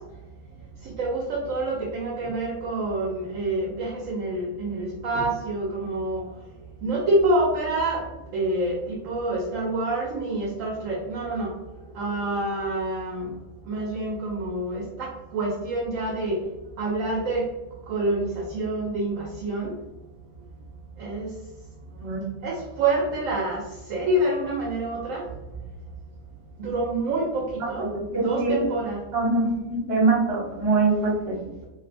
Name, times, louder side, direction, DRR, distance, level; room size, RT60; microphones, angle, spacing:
voice 1, 1.0-6.2 6.8-8.0 8.3-8.8 9.0-11.5 12.0-13.3 13.7-16.4 16.8-17.5 17.9-19.7 21.0-21.3 22.4-23.6 23.9-25.2 26.6-27.9 28.1-29.0, right 2 dB, 70° right, -2 dB, 1.0 m, -27 dB
voice 2, 27.9-28.6 29.1-31.7, right 3 dB, 45° right, -3 dB, 1.2 m, -24 dB
3.1 x 2.7 x 2.5 m, 1.1 s
omnidirectional pair, 1.5 m